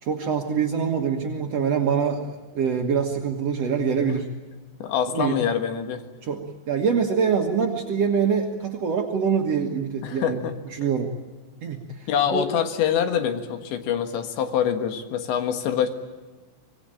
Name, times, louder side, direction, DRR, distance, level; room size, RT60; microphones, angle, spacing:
voice 1, 0.0-4.3 5.1-5.4 6.2-11.1 11.6-12.5, right 6 dB, 75° right, 1 dB, 1.4 m, -25 dB
voice 2, 4.8-6.0 10.0-10.5 12.1-15.9, left 8 dB, 75° left, 7 dB, 3.8 m, -25 dB
25.5 x 20.0 x 8.9 m, 1.3 s
omnidirectional pair, 5.4 m